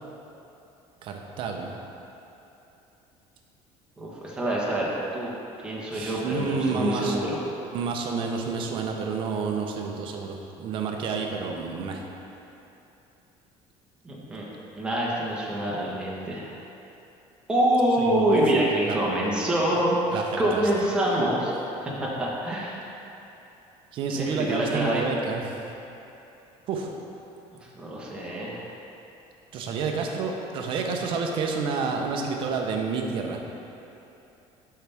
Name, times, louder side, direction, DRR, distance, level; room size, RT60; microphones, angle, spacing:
voice 1, 1.0-1.7 5.9-7.2 7.7-12.1 18.0-19.0 20.1-20.6 23.9-25.4 26.7-26.9 29.5-33.4, right 5 dB, 45° right, 2 dB, 0.9 m, -29 dB
voice 2, 4.0-5.3 5.6-7.4 14.0-14.4 14.8-16.5 17.5-21.5 21.8-22.7 24.1-25.0 27.7-28.7, right 1 dB, 10° right, -5 dB, 1.3 m, -26 dB
12.5 x 5.7 x 3.6 m, 2.9 s
cardioid pair, 175°, 12 cm